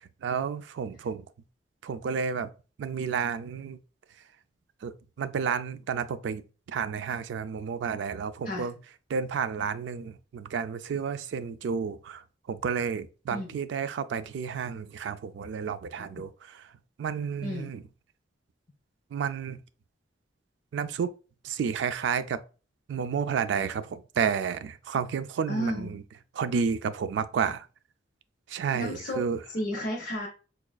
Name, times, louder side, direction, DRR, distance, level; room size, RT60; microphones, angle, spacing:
voice 1, 0.2-1.3 1.8-2.5 2.8-3.8 4.8-6.4 6.7-8.7 9.1-12.2 12.5-16.3 17.0-17.8 19.1-19.6 20.7-21.1 21.4-22.4 22.9-26.0 26.4-27.7 28.5-29.4, right 6 dB, 75° right, 0.3 m, -31 dB
voice 2, 17.4-17.8 25.5-26.0 28.7-29.2 29.5-30.3, equal, 50° left, 0.7 m, -32 dB
4.8 x 2.3 x 2.2 m
head